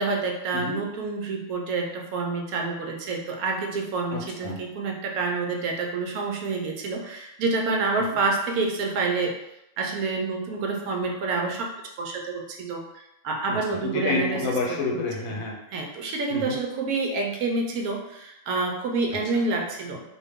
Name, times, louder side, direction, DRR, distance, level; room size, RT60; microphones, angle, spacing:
voice 1, 0.0-9.3 9.8-11.7 12.0-14.4 14.9-15.0 15.7-20.0, right 3 dB, 85° right, 2 dB, 1.0 m, -28 dB
voice 2, 4.1-4.6 13.5-15.6 16.3-16.6, left 3 dB, 75° left, -1 dB, 1.1 m, -29 dB
2.6 x 2.3 x 3.4 m, 0.85 s
omnidirectional pair, 1.5 m